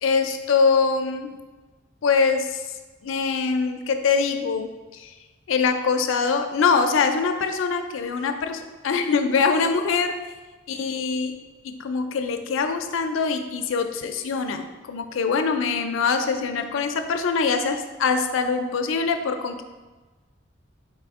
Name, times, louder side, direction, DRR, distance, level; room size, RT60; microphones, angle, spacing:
voice 1, 0.0-1.3 2.0-2.6 3.0-5.1 5.5-10.2 10.7-11.3 11.6-19.6, left 5 dB, 80° left, 7 dB, 0.4 m, -23 dB
4.2 x 3.4 x 3.5 m, 1.2 s
head